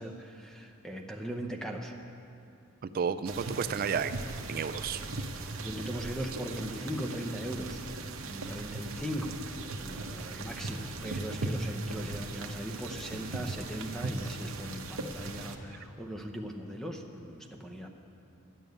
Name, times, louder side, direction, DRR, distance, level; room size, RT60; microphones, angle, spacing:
voice 1, 0.0-1.9 5.6-7.8 8.2-9.4 9.8-17.9, equal, ahead, 3 dB, 0.7 m, -39 dB
voice 2, 2.8-4.1 4.5-5.0 10.3-10.5, right 6 dB, 40° right, 12 dB, 0.3 m, -32 dB
sound 1, 3.2-15.6, right 2 dB, 60° right, 0.8 m, -38 dB
10.5 x 7.0 x 9.3 m, 2.6 s
head